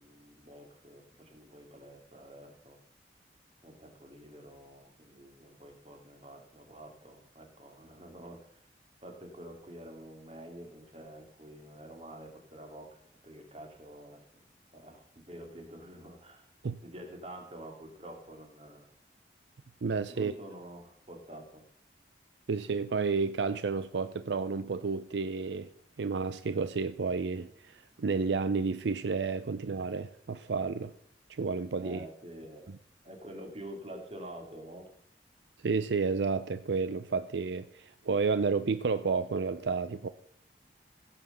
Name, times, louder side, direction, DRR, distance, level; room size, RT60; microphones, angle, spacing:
voice 1, 0.0-2.8 3.6-8.7 9.0-13.0 13.2-14.4 14.7-16.5 16.8-18.9 20.1-21.6 31.8-32.7 33.0-34.9, right 1 dB, 35° right, 2.4 m, -48 dB
voice 2, 19.8-20.3 22.5-25.7 26.0-30.9 31.3-32.1 35.6-40.1, right 4 dB, 75° right, 0.5 m, -31 dB
16.0 x 5.9 x 6.7 m
head